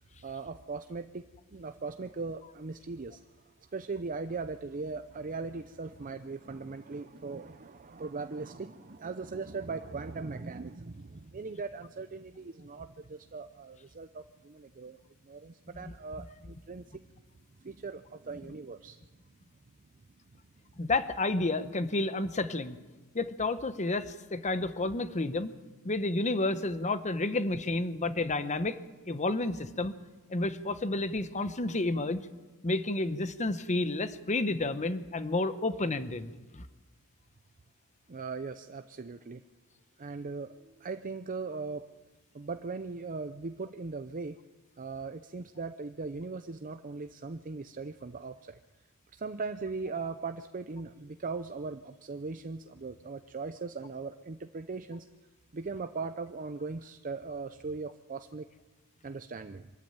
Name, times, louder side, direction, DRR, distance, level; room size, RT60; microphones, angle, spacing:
voice 1, 0.2-3.2 3.7-15.0 15.2-17.0 17.6-19.0 20.3-20.4 27.2-27.4 27.9-28.1 38.1-39.4 40.0-41.9 42.3-44.4 44.8-48.6 49.1-55.1 55.5-58.5 59.0-59.7, right 4 dB, 40° right, 9 dB, 0.6 m, -39 dB
voice 2, 20.8-22.8 23.1-25.5 25.8-28.8 29.1-29.9 30.3-32.2 32.6-36.6, left 2 dB, 30° left, 12 dB, 1.0 m, -30 dB
24.0 x 13.5 x 8.8 m, 1.2 s
head